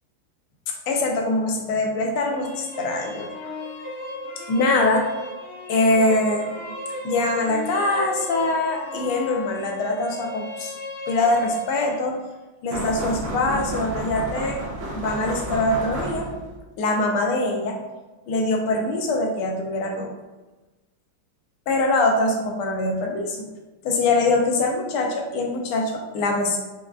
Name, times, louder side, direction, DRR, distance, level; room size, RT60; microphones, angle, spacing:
voice 1, 0.7-3.5 4.5-5.1 5.7-6.5 7.0-10.7 11.1-12.2 12.6-14.7 14.9-16.3 16.8-17.8 18.3-20.1 21.7-23.5 23.8-26.6, left 2 dB, 85° left, 1 dB, 1.4 m, -23 dB
sound 1, 2.1-12.1, left 1 dB, 55° left, 1.4 m, -35 dB
sound 2, 12.7-16.6, right 2 dB, 75° right, 1.5 m, -31 dB
4.8 x 2.2 x 2.3 m, 1.2 s
omnidirectional pair, 2.3 m